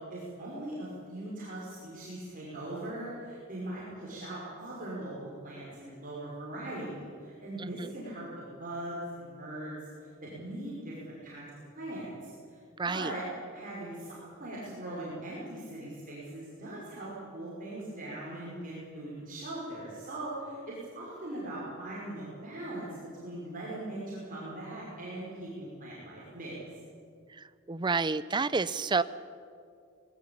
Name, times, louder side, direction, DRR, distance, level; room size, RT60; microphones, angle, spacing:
voice 1, 0.1-5.1 5.4-9.7 10.2-11.4 11.8-12.6 12.8-13.2 13.5-22.9 23.2-26.6, right 1 dB, 40° right, -7 dB, 5.5 m, -40 dB
voice 2, 7.6-7.9 12.8-13.1 27.4-29.0, right 4 dB, 20° right, 15 dB, 0.5 m, -30 dB
20.5 x 18.0 x 8.6 m, 2.3 s
head